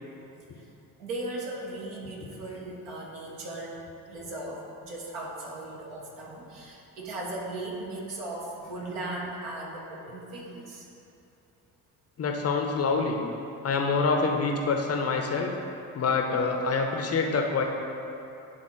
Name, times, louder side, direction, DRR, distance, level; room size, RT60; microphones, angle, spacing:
voice 1, 1.0-3.8 4.1-10.9, right 2 dB, 65° right, -3 dB, 1.5 m, -37 dB
voice 2, 12.2-13.2 13.6-15.5 15.9-17.6, left 4 dB, 30° left, 2 dB, 0.7 m, -26 dB
10.5 x 3.7 x 3.7 m, 2.9 s
figure-of-eight pair, 45°, 47 cm